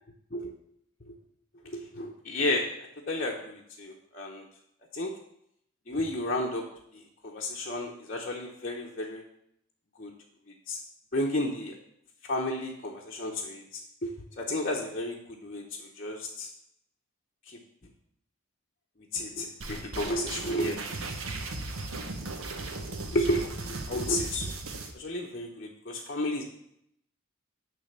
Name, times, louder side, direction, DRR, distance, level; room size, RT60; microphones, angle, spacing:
voice 1, 1.6-2.6 3.1-4.4 4.9-5.1 5.9-6.6 6.9-9.2 10.0-10.1 10.7-10.8 11.1-11.7 12.3-16.5 17.5-17.6 19.1-20.8 23.1-24.5 24.9-26.4, left 1 dB, 40° left, -4 dB, 0.9 m, -32 dB
sound 1, 19.6-24.9, right 3 dB, 80° right, 1.0 m, -37 dB
9.9 x 3.4 x 6.7 m, 0.74 s
head